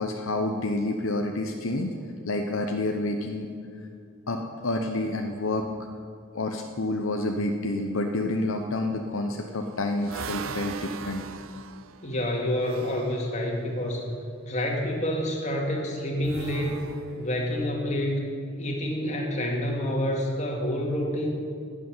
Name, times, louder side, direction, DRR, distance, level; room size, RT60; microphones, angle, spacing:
voice 1, 0.0-2.0 2.3-3.5 4.3-5.7 6.3-11.2, left 2 dB, 70° left, 3 dB, 0.9 m, -28 dB
sound 1, 9.3-13.2 16.2-17.6, right 5 dB, 70° right, 0.6 m, -39 dB
voice 2, 12.0-14.1 14.5-16.8 17.1-21.5, left 1 dB, 35° left, 0 dB, 2.3 m, -28 dB
12.5 x 8.4 x 9.6 m, 2.4 s
head